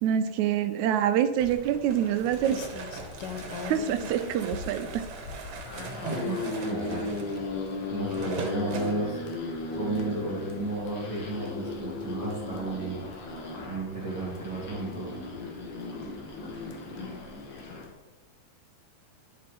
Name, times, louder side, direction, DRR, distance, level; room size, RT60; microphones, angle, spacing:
voice 1, 0.0-2.6 3.6-5.1, right 9 dB, 80° right, 10 dB, 1.9 m, -26 dB
Rain, 1.4-17.9, left 5 dB, 90° left, 1.2 m, -45 dB
sound 1, 1.4-9.0, right 5 dB, 60° right, 2.0 m, -41 dB
voice 2, 5.6-7.1 7.9-9.2 9.7-13.0 13.6-15.1, right 2 dB, 15° right, -8 dB, 2.3 m, -33 dB
sound 2, 5.7-17.9, left 3 dB, 45° left, 2.1 m, -36 dB
10.5 x 5.3 x 4.2 m, 1.1 s
omnidirectional pair, 3.5 m